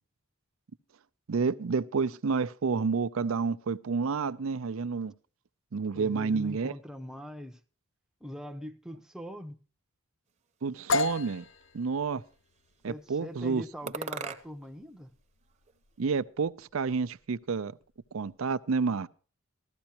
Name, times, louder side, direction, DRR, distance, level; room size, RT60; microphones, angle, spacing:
voice 1, 1.3-5.1 5.7-6.7 10.6-11.5 11.7-12.2 12.8-13.6 16.0-17.7 18.1-19.1, right 5 dB, 70° right, 0.5 m, -29 dB
voice 2, 5.9-7.6 8.2-9.6 12.8-15.1, equal, 5° right, 0.7 m, -42 dB
sound 1, 10.6-11.7 12.3-13.0 13.9-14.8 15.1-16.1, right 5 dB, 35° right, 0.9 m, -42 dB
sound 2, 10.9-18.5, left 3 dB, 60° left, 0.6 m, -36 dB
15.5 x 13.0 x 2.9 m
head